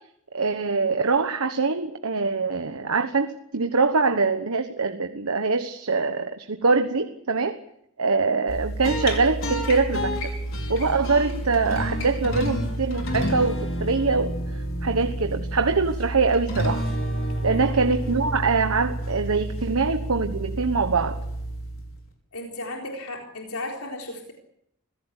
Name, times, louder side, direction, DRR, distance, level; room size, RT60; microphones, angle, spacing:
voice 1, 0.3-7.6 8.0-10.3 10.7-14.3 14.8-16.8 17.4-21.2, right 4 dB, 80° right, 7 dB, 1.3 m, -23 dB
sound 1, 8.5-22.1, right 1 dB, 65° left, 5.8 m, -29 dB
voice 2, 22.3-24.3, left 2 dB, 90° left, 1 dB, 4.1 m, -35 dB
25.5 x 17.0 x 8.2 m, 0.75 s
head